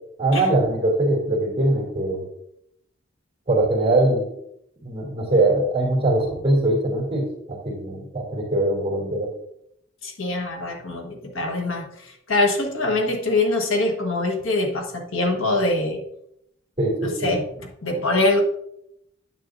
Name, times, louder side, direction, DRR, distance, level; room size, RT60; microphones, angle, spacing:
voice 1, 0.2-2.3 3.5-4.3 4.8-9.3 16.8-17.4, right 1 dB, 25° right, -1 dB, 2.5 m, -22 dB
voice 2, 10.0-16.0 17.0-18.4, left 2 dB, 75° left, 2 dB, 1.4 m, -24 dB
9.3 x 7.6 x 2.6 m, 0.76 s
head